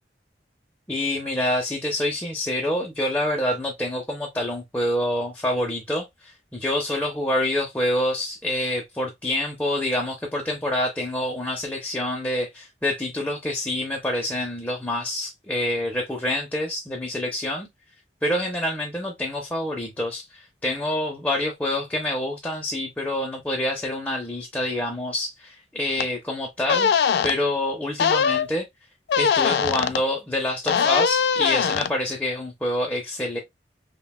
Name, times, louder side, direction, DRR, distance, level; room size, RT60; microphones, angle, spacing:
voice 1, 0.9-17.7 18.2-26.9 27.2-28.7 29.2-33.4, left 1 dB, 10° left, 0.5 m, -27 dB
sound 1, 26.0-26.1 26.7-27.3 28.0-28.5 29.1-30.0 30.7-31.9, left 6 dB, 65° left, 0.3 m, -21 dB
5.6 x 2.2 x 2.2 m
head